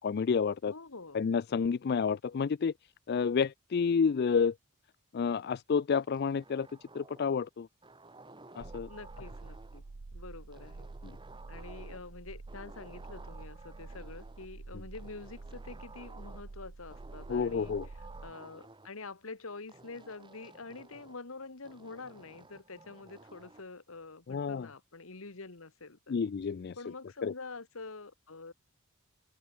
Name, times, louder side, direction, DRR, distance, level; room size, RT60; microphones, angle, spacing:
voice 1, 0.0-0.7 1.1-2.7 3.1-4.5 5.1-6.7 6.9-7.7 8.6-8.9 11.0-11.2 17.3-17.9 24.3-24.7 26.1-26.8 27.2-27.3, left 6 dB, 50° left, 0.4 m, -29 dB
voice 2, 0.7-1.2 8.9-9.8 10.1-10.9 11.5-17.7 18.2-26.2 26.7-28.5, left 3 dB, 75° left, 1.6 m, -47 dB
sound 1, 5.9-7.4 7.8-9.9 10.5-12.2 12.5-14.5 14.9-16.5 16.9-18.9 19.7-21.2 21.6-23.7, right 2 dB, 25° right, 5.2 m, -54 dB
sound 2, 8.6-18.3, right 3 dB, 75° right, 0.8 m, -48 dB
open air
head